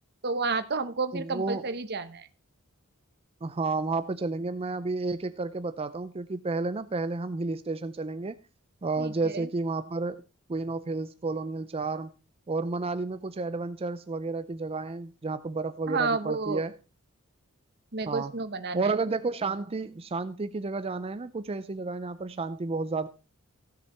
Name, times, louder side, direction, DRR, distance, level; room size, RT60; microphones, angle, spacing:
voice 1, 0.2-2.3 9.0-9.5 15.9-16.6 17.9-18.9, right 4 dB, 50° right, 1.1 m, -30 dB
voice 2, 1.1-1.7 3.4-8.4 8.8-10.2 10.5-12.1 12.5-16.7 18.1-18.3 18.7-23.1, right 3 dB, 25° right, 0.5 m, -31 dB
16.0 x 6.6 x 4.3 m
head